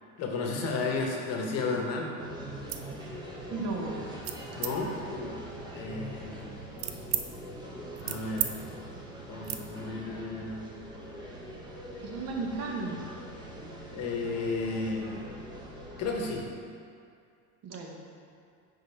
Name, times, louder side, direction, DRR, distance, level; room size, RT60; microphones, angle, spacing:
voice 1, 0.2-2.1 4.6-5.4 5.7-6.6 8.0-8.5 9.3-10.7 13.9-15.3 16.0-16.5, left 3 dB, 45° left, 0 dB, 1.0 m, -33 dB
sound 1, 2.2-16.4, right 1 dB, 10° right, 0.8 m, -43 dB
sound 2, 2.5-2.9 3.4-3.7 4.2-4.7 5.4-7.3 7.7-8.5 8.8-9.0 9.4-9.6, right 11 dB, 65° right, 0.5 m, -36 dB
voice 2, 3.5-4.1 12.0-13.0 17.6-18.0, right 3 dB, 45° right, 1 dB, 0.9 m, -34 dB
5.1 x 3.9 x 5.3 m, 2.3 s
cardioid pair, 140°, 36 cm